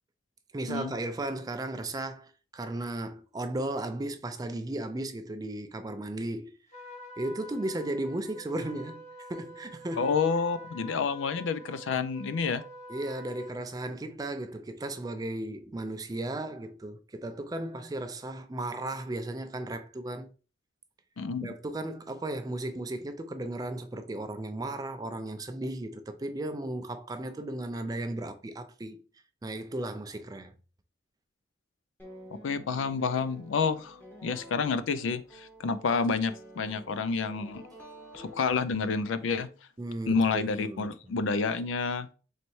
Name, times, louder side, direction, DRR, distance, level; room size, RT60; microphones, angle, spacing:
voice 1, 0.5-6.5 7.2-9.0 9.3-10.1 12.9-20.3 21.4-29.0 29.4-30.5 39.8-41.1, right 1 dB, 20° right, 0.4 m, -35 dB
Trumpet, 6.7-13.6, equal, 40° left, 1.2 m, -47 dB
voice 2, 10.0-12.6 21.2-21.5 32.3-37.6 38.1-39.5 40.1-42.1, left 5 dB, 90° left, 0.4 m, -29 dB
sound 1, 32.0-39.1, right 1 dB, 10° left, 0.9 m, -50 dB
4.0 x 3.2 x 3.1 m
head